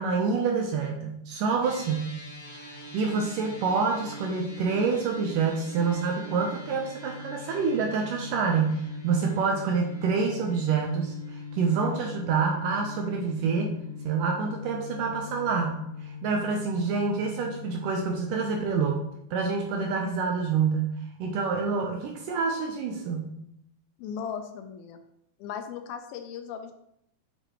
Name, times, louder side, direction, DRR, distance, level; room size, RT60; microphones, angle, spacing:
voice 1, 0.0-2.1 2.5-13.7 14.0-23.3, right 5 dB, 75° right, 2 dB, 2.1 m, -27 dB
sound 1, 1.6-19.1, left 4 dB, 50° left, 1.0 m, -41 dB
voice 2, 24.0-25.0 25.4-26.7, left 7 dB, 80° left, 7 dB, 2.4 m, -37 dB
8.0 x 7.0 x 3.0 m, 0.75 s
omnidirectional pair, 4.5 m